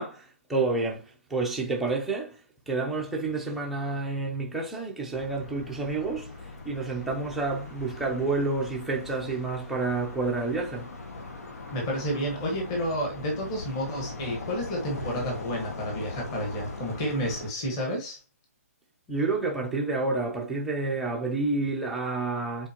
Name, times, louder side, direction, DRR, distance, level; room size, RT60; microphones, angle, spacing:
voice 1, 0.0-2.4 2.7-10.9 19.1-22.7, right 3 dB, ahead, 0.5 m, -29 dB
sound 1, 5.1-17.5, left 3 dB, 75° left, 1.7 m, -40 dB
voice 2, 11.7-18.2, equal, 20° left, 1.5 m, -30 dB
7.3 x 4.4 x 2.9 m
hypercardioid pair, 175°, 8 cm